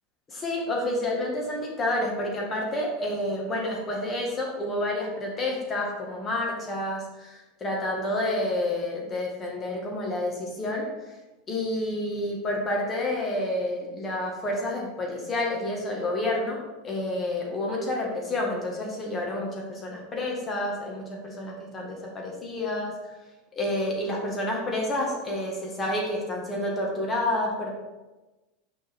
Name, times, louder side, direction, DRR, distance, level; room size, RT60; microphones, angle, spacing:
voice 1, 0.3-11.1 11.5-22.9 23.6-27.7, left 1 dB, 25° left, -1 dB, 1.9 m, -29 dB
6.6 x 5.2 x 3.7 m, 1.1 s
supercardioid pair, 115°, 0 cm